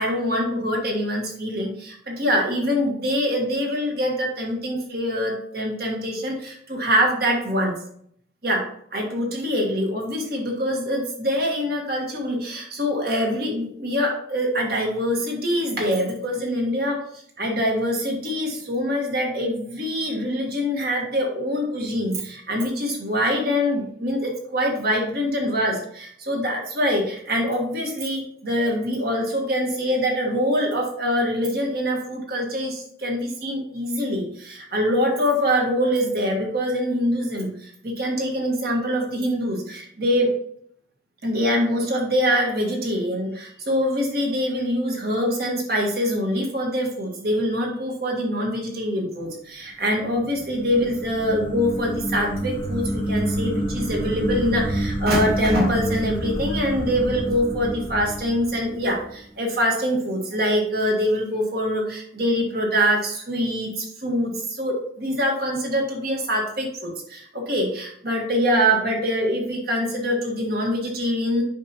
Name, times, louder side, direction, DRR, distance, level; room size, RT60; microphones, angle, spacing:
voice 1, 0.0-7.7 8.4-40.3 41.2-71.4, equal, 55° right, 0 dB, 1.7 m, -24 dB
sound 1, 50.0-59.2, right 1 dB, 30° left, 1.0 m, -28 dB
7.7 x 5.4 x 3.0 m, 0.66 s
head